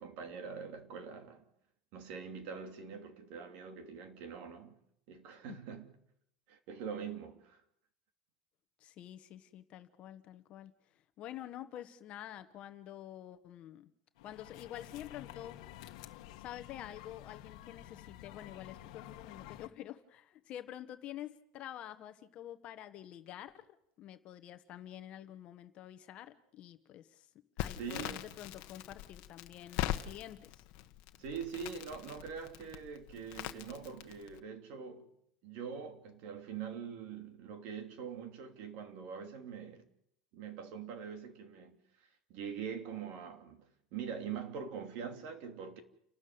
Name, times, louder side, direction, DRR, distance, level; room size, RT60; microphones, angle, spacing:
voice 1, 0.0-1.4 1.9-4.8 5.1-5.9 6.5-7.6 27.8-28.3 31.2-35.1 35.4-39.8 40.3-41.8 42.3-43.6 43.9-45.8, right 6 dB, 50° right, 2.9 m, -43 dB
voice 2, 8.8-10.7 11.2-13.9 14.2-15.6 16.4-23.7 24.0-27.3 27.6-30.6, left 12 dB, 35° left, 1.2 m, -48 dB
sound 1, 14.2-19.7, left 13 dB, 75° left, 1.4 m, -51 dB
Crackle, 27.6-34.4, left 14 dB, 50° left, 1.4 m, -42 dB
30.0 x 13.0 x 8.0 m
cardioid pair, 170°, 3 cm